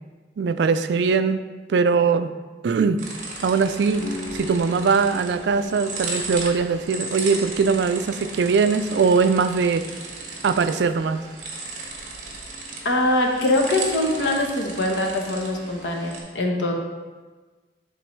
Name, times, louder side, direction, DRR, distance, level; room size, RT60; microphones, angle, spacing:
voice 1, 0.4-1.4 1.7-2.3 2.6-3.0 3.4-9.8 10.4-11.2, right 5 dB, 70° right, 10 dB, 0.4 m, -21 dB
sound 1, 3.0-16.2, right 3 dB, 45° right, 1.2 m, -35 dB
sound 2, 4.0-9.8, left 1 dB, 55° left, 0.8 m, -40 dB
voice 2, 12.8-16.7, left 1 dB, 85° left, 1 dB, 1.1 m, -23 dB
10.0 x 3.9 x 3.2 m, 1.3 s
head